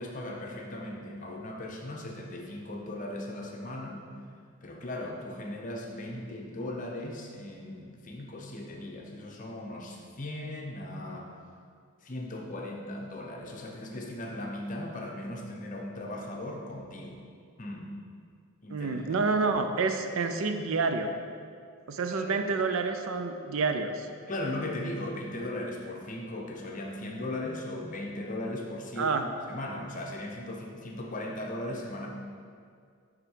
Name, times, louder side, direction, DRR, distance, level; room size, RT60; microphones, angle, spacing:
voice 1, 0.0-4.0 4.6-11.3 12.0-17.2 17.6-17.9 18.6-19.0 22.2-22.3 24.3-29.1 29.5-32.1, left 1 dB, 35° left, 0 dB, 0.7 m, -38 dB
voice 2, 18.7-21.2 21.9-24.1 29.0-29.2, right 4 dB, 65° right, 7 dB, 0.4 m, -28 dB
6.6 x 3.7 x 6.3 m, 2.2 s
head